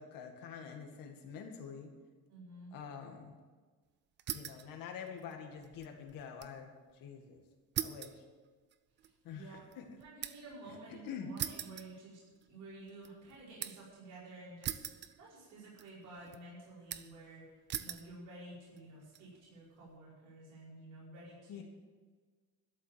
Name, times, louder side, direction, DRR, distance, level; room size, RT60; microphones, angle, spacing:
voice 1, 0.0-1.9 2.7-3.3 4.3-7.4 7.8-8.2 9.2-9.9 10.7-11.3 21.5-21.6, left 7 dB, 60° left, 3 dB, 2.2 m, -47 dB
voice 2, 2.3-2.7 9.3-12.2 12.5-17.5 17.8-21.6, right 2 dB, 55° right, -7 dB, 5.1 m, -52 dB
sound 1, 4.2-4.7 5.1-6.6 6.9-7.0 7.7-10.6 11.4-12.5 12.9-13.9 14.6-15.5 15.8-16.4 16.9-17.3 17.7-18.1 18.8-19.2, right 10 dB, 30° right, 0.4 m, -42 dB
12.5 x 7.4 x 9.0 m, 1.4 s
cardioid pair, 175°, 38 cm